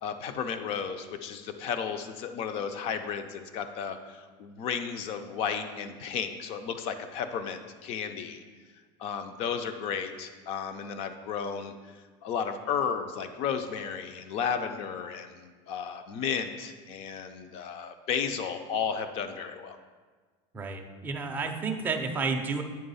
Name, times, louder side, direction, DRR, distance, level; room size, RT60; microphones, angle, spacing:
voice 1, 0.0-8.4 9.0-19.8, left 7 dB, 40° left, 9 dB, 0.5 m, -33 dB
voice 2, 20.5-22.6, right 4 dB, 10° right, 3 dB, 0.4 m, -31 dB
9.0 x 3.4 x 5.5 m, 1.4 s
cardioid pair, 170°, 16 cm